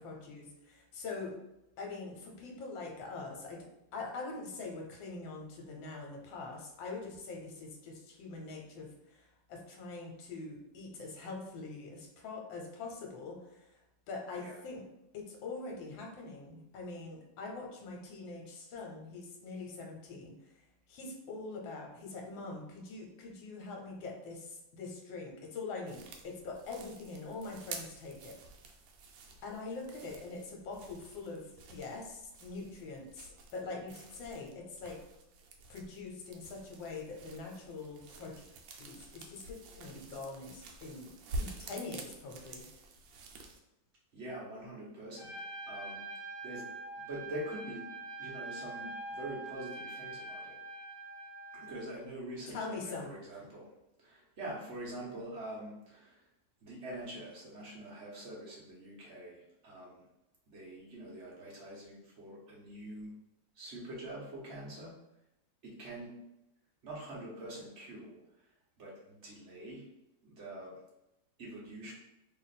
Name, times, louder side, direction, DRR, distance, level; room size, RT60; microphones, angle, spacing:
voice 1, 0.0-1.4 1.8-3.7 3.9-13.6 14.1-14.8 15.1-20.3 20.9-28.4 29.4-35.0 35.7-38.5 38.8-42.6 52.5-53.4, left 3 dB, 75° left, 1 dB, 1.5 m, -43 dB
sound 1, 25.9-43.6, right 2 dB, 75° right, 1.3 m, -48 dB
voice 2, 44.1-45.4 45.7-46.0 46.4-46.7 47.0-47.8 48.2-50.6 51.5-53.7 54.0-56.2 56.6-60.0 60.5-63.1 63.6-65.0 65.6-66.1 66.8-68.2 68.8-69.9 70.2-70.7 71.4-71.9, right 1 dB, 45° right, -5 dB, 1.1 m, -45 dB
Trumpet, 45.2-51.9, right 2 dB, 35° left, 0.9 m, -44 dB
3.2 x 2.5 x 4.0 m, 0.88 s
omnidirectional pair, 2.2 m